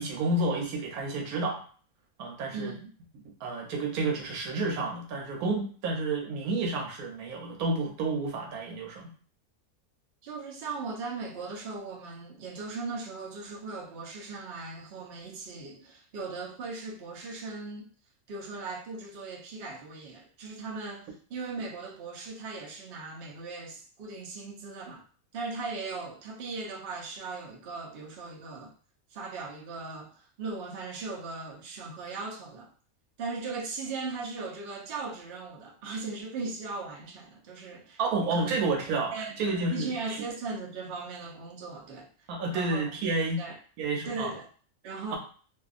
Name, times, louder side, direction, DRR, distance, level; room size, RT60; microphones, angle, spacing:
voice 1, 0.0-1.6 2.2-2.7 3.4-9.1 38.0-39.1 39.4-40.2 42.3-43.4 43.8-44.3, right 2 dB, 85° right, 1 dB, 1.1 m, -30 dB
voice 2, 2.5-2.9 10.2-17.9 18.3-25.0 25.3-28.7 29.1-30.1 30.4-32.7 33.2-38.0 38.3-38.5 39.1-39.4 39.7-42.3 42.5-42.8 43.4-43.6 44.0-44.5 44.8-45.2, right 3 dB, 55° right, -1 dB, 0.7 m, -38 dB
2.6 x 2.3 x 2.4 m, 0.42 s
omnidirectional pair, 1.5 m